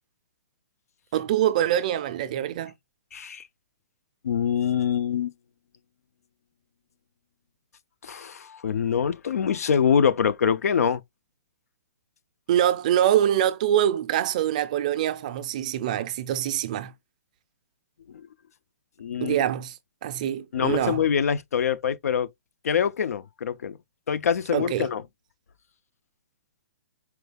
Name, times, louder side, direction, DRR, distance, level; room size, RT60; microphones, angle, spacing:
voice 1, 1.1-2.7 12.5-16.9 19.2-19.8 20.0-21.0 24.5-24.9, right 11 dB, 30° right, 0.4 m, -24 dB
voice 2, 3.1-3.4 4.2-5.3 8.0-11.0 18.1-18.3 19.0-19.4 20.5-22.3 22.6-23.8 24.1-25.0, left 7 dB, 85° left, 0.5 m, -24 dB
4.5 x 2.3 x 3.4 m
hypercardioid pair, 175°, 8 cm